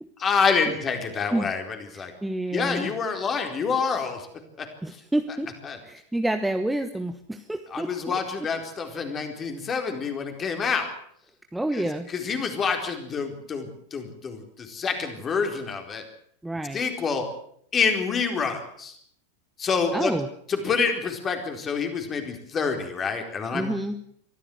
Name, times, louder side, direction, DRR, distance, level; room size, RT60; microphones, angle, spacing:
voice 1, 0.2-1.6 1.9-2.1 2.5-4.3 4.6-4.7 5.7-5.8 7.7-10.9 11.7-11.8 12.1-16.0 16.7-17.3 17.7-18.9 19.6-20.1 20.5-23.8, left 5 dB, 25° left, 5 dB, 4.3 m, -27 dB
voice 2, 1.9-2.9 4.8-5.5 5.8-8.2 11.5-12.1 16.4-16.8 19.9-20.3 23.5-24.0, right 1 dB, 5° right, 7 dB, 1.1 m, -29 dB
23.5 x 15.0 x 8.0 m, 0.67 s
figure-of-eight pair, 90°, 0 cm